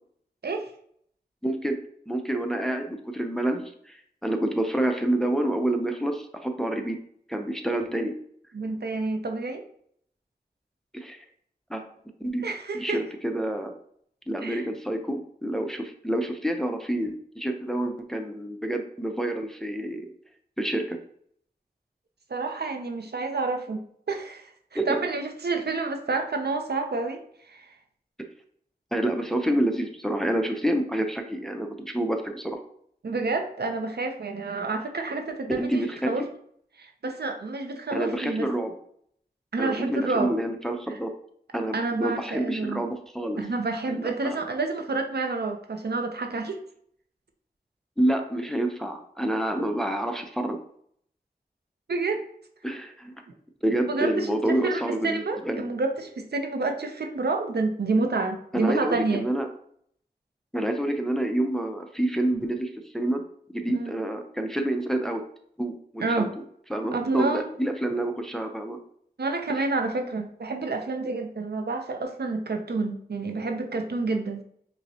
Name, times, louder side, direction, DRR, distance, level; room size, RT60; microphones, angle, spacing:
voice 1, 1.4-1.8 2.1-7.0 7.3-8.1 10.9-11.2 11.7-11.9 12.2-12.5 12.7-13.7 14.3-20.1 20.6-21.0 24.7-24.9 28.9-32.6 35.6-36.3 37.9-38.7 39.6-41.1 41.5-43.4 43.9-44.4 48.0-50.6 52.6-53.2 53.6-55.6 58.5-59.5 60.5-63.2 63.5-65.2 65.6-66.3 66.7-68.8 69.5-69.6, right 1 dB, 5° left, 4 dB, 0.5 m, -28 dB
voice 2, 8.5-9.6 12.4-13.0 14.4-14.7 22.3-23.8 24.1-27.2 27.5-27.7 33.0-36.2 36.8-38.5 39.5-40.3 41.7-42.8 43.4-46.6 51.9-52.2 53.9-54.3 54.6-59.3 63.7-63.9 66.0-66.3 66.9-67.5 69.2-74.4, right 3 dB, 75° right, 4 dB, 0.5 m, -29 dB
5.2 x 2.1 x 2.7 m, 0.64 s
wide cardioid pair, 45°, 17 cm